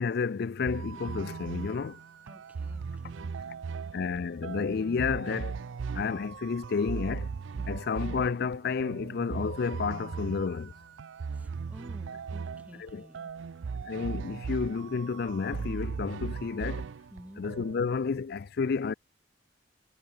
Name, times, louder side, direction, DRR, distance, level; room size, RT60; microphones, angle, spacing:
voice 1, 0.0-2.0 3.9-5.6 5.9-7.3 7.7-10.7 12.8-13.1 13.8-16.9 17.4-18.9, left 5 dB, 55° left, 0.4 m, -31 dB
sound 1, 0.6-17.9, right 5 dB, 75° right, 0.4 m, -38 dB
voice 2, 2.2-3.3 7.5-7.7 11.3-13.6 17.1-17.4, equal, 10° right, 2.3 m, -51 dB
head